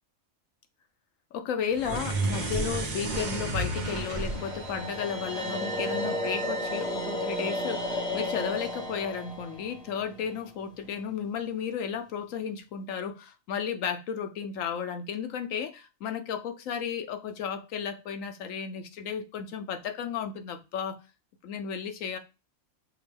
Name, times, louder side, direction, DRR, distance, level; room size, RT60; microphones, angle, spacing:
voice 1, 1.3-21.0 21.4-22.2, left 7 dB, 85° left, 1.1 m, -34 dB
sound 1, 1.7-6.1, right 2 dB, 40° right, 0.8 m, -32 dB
sound 2, 3.8-10.9, left 1 dB, 5° left, 0.7 m, -34 dB
6.0 x 2.1 x 3.3 m
omnidirectional pair, 1.3 m